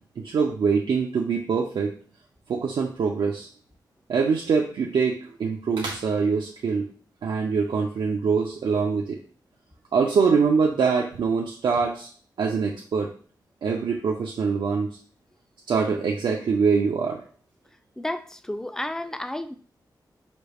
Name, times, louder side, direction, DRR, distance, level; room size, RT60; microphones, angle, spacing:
voice 1, 0.2-1.9 2.5-3.5 4.1-6.9 7.2-9.2 9.9-12.1 12.4-13.1 13.6-14.9 15.7-17.2, right 5 dB, 90° right, 0.5 m, -24 dB
voice 2, 18.0-19.6, left 1 dB, 5° left, 0.3 m, -31 dB
5.0 x 2.3 x 3.3 m
wide cardioid pair, 90°, 8 cm